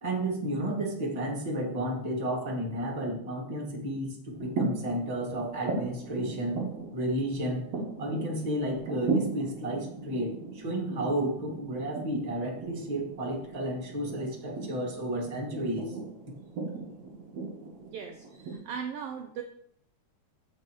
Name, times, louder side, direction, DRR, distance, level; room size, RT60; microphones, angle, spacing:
voice 1, 0.0-6.6 6.9-7.6 8.0-15.9, right 1 dB, 20° right, -1 dB, 1.1 m, -32 dB
sound 1, 4.3-18.5, right 3 dB, 65° right, 2.4 m, -37 dB
voice 2, 17.8-19.4, right 7 dB, 85° right, 5 dB, 1.3 m, -39 dB
14.5 x 5.3 x 3.0 m, 0.70 s
omnidirectional pair, 3.4 m